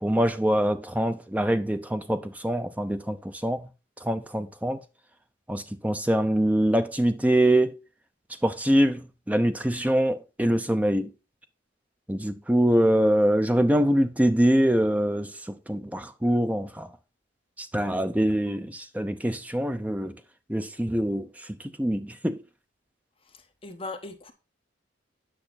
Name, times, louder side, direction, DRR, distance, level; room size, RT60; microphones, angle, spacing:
voice 1, 0.0-3.7 4.0-4.8 5.5-7.8 8.4-11.1 12.1-16.9 17.6-20.2 20.5-21.5 21.8-22.4, right 1 dB, 10° right, 0.5 m, -24 dB
voice 2, 23.2-24.3, left 3 dB, 30° left, 1.2 m, -39 dB
8.9 x 5.7 x 4.1 m
head